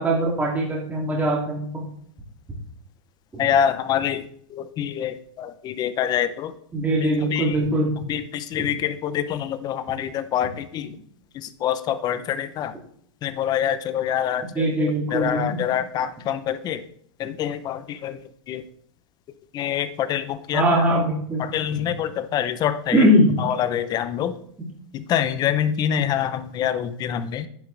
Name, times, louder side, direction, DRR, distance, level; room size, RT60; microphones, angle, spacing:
voice 1, 0.0-1.8 6.7-7.9 8.5-8.7 14.5-15.6 20.5-21.4 21.7-21.8 22.9-23.4, equal, 10° right, -4 dB, 2.9 m, -21 dB
voice 2, 3.4-4.2 4.8-6.5 7.3-7.4 8.1-8.2 8.5-10.9 11.6-12.7 13.2-14.4 15.1-16.8 17.2-18.1 18.5-18.6 19.5-20.2 20.5-20.6 21.5-23.0 23.6-24.3 25.1-27.4, left 9 dB, 25° left, 12 dB, 0.8 m, -25 dB
11.0 x 9.5 x 3.5 m, 0.65 s
hypercardioid pair, 145°, 16 cm